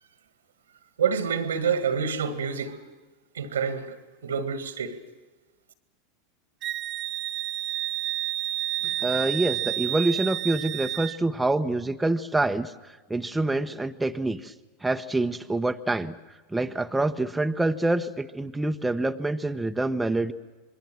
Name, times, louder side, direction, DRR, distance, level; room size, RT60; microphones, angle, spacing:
voice 1, 1.0-2.8 3.4-4.0 4.2-5.0, right 6 dB, 80° right, 1.9 m, -27 dB
Wind instrument woodwind instrument, 6.6-11.2, right 14 dB, 40° right, 0.7 m, -30 dB
voice 2, 8.8-14.5 14.8-16.1 16.5-20.3, right 2 dB, 10° right, 1.0 m, -26 dB
26.0 x 22.0 x 7.6 m
hypercardioid pair, 90°, 0 cm